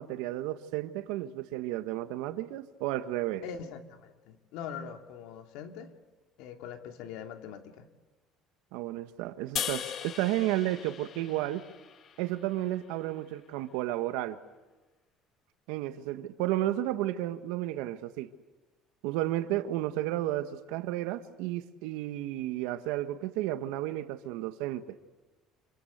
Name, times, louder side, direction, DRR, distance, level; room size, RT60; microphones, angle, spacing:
voice 1, 0.0-3.4 8.7-11.6 12.2-14.4 15.7-18.3 19.0-25.0, right 14 dB, 90° right, 1.5 m, -32 dB
voice 2, 3.4-5.9 6.4-7.9, left 7 dB, 80° left, 2.6 m, -42 dB
sound 1, 9.6-12.8, left 8 dB, 45° left, 1.3 m, -39 dB
27.5 x 24.5 x 8.1 m
cardioid pair, 140°, 0 cm